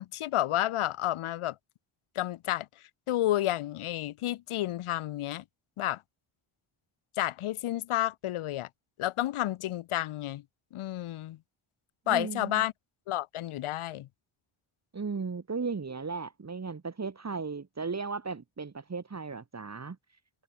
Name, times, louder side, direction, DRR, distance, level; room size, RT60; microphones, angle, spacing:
voice 1, 0.0-1.6 2.1-2.7 3.1-5.4 5.8-6.0 7.2-8.7 9.0-10.4 10.7-11.4 12.1-12.7 13.1-14.1, left 14 dB, 80° left, 0.8 m, -30 dB
voice 2, 12.1-12.6 14.9-20.0, right 4 dB, 30° right, 2.7 m, -36 dB
wide cardioid pair, 110°, 50 cm